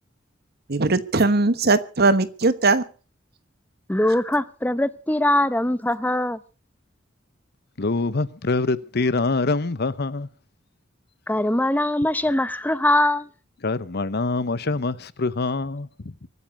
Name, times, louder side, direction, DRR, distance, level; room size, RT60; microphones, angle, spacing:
voice 1, 0.7-2.8, right 3 dB, 55° right, 1.2 m, -19 dB
voice 2, 3.9-6.4 11.3-13.3, left 1 dB, 10° left, 0.8 m, -22 dB
voice 3, 7.8-10.3 13.6-16.3, left 3 dB, 55° left, 0.9 m, -25 dB
24.0 x 9.7 x 5.3 m
head